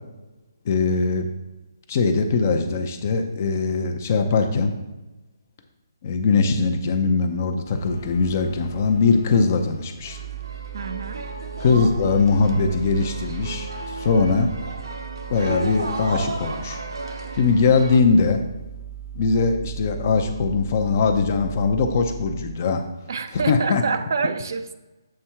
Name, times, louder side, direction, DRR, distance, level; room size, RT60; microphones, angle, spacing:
voice 1, 0.6-1.3 1.9-4.7 6.0-10.2 11.6-14.5 15.3-16.8 17.3-18.4 19.1-22.8 23.3-23.8, left 4 dB, 40° left, 6 dB, 0.6 m, -21 dB
sound 1, 7.6-22.6, right 8 dB, 70° left, 0.8 m, -38 dB
sound 2, 10.0-18.0, right 2 dB, 80° right, 0.9 m, -34 dB
voice 2, 10.7-11.3 23.1-24.7, right 5 dB, 60° right, 9 dB, 0.5 m, -27 dB
7.6 x 3.5 x 4.4 m, 1.1 s
hypercardioid pair, 155°, 2 cm